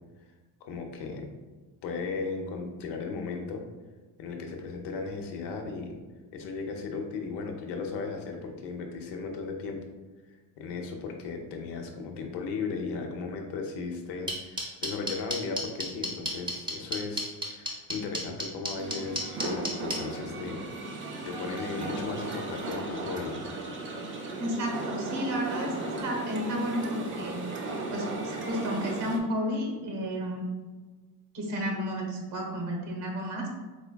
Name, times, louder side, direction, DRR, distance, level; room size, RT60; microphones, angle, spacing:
voice 1, 0.6-1.3 1.8-3.6 4.2-6.0 6.3-9.8 10.6-20.6 21.3-23.5, left 4 dB, 70° left, 3 dB, 0.8 m, -36 dB
sound 1, 14.3-20.0, equal, 10° right, 0.8 m, -30 dB
sound 2, 18.8-29.2, right 2 dB, 30° right, 0.5 m, -36 dB
voice 2, 24.4-25.7 26.0-27.4 27.9-30.5 31.3-33.5, equal, 70° right, 1 dB, 1.2 m, -32 dB
4.3 x 3.4 x 2.3 m, 1.3 s
cardioid pair, 130°, 43 cm